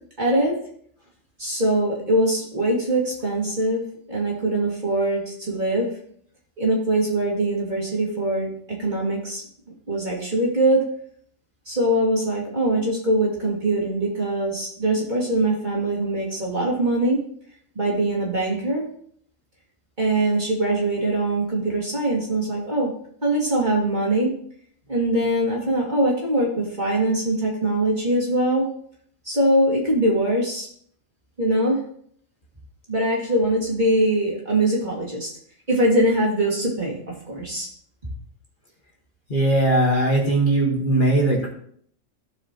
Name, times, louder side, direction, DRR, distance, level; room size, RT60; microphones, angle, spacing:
voice 1, 0.2-0.6 1.4-5.9 6.6-9.4 9.9-10.8 11.7-17.2 17.8-18.8 20.0-22.9 23.2-24.3 24.9-28.7 29.2-30.7 31.4-31.8 32.9-35.3 35.7-37.7, right 1 dB, 35° right, -4 dB, 2.4 m, -22 dB
voice 2, 39.3-41.5, right 1 dB, 40° left, -2 dB, 1.6 m, -19 dB
14.5 x 4.9 x 2.9 m, 0.63 s
omnidirectional pair, 1.4 m